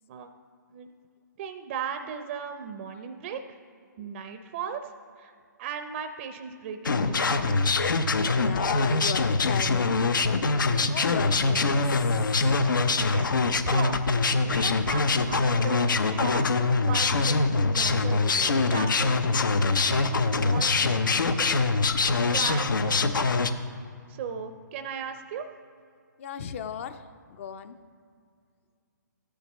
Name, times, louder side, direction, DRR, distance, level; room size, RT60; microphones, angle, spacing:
voice 1, 1.4-3.6 4.0-4.9 5.2-7.6 11.5-11.6 13.0-13.3 13.6-14.0 14.4-16.4 16.7-21.5 22.3-23.4 24.1-25.5, right 7 dB, 35° right, 7 dB, 0.5 m, -37 dB
sound 1, 6.8-23.5, left 3 dB, 80° left, 0.7 m, -24 dB
voice 2, 8.3-9.9 10.7-12.7 26.2-27.0 27.3-27.8, left 8 dB, 40° left, 11 dB, 0.6 m, -36 dB
14.0 x 10.0 x 3.0 m, 2.3 s
hypercardioid pair, 140°, 11 cm